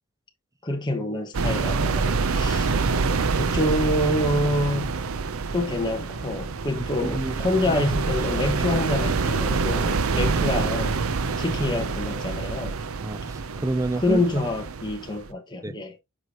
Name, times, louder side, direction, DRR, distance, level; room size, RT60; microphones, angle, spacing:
voice 1, 0.6-2.7 3.3-5.0 5.5-11.0 11.4-12.8 14.0-15.9, left 1 dB, 20° left, 1.0 m, -27 dB
sound 1, 1.3-15.3, right 4 dB, 70° right, 0.6 m, -26 dB
voice 2, 6.8-7.4 7.7-7.8 13.0-14.3 15.6-16.0, right 2 dB, 15° right, 0.4 m, -30 dB
7.5 x 4.8 x 2.9 m
head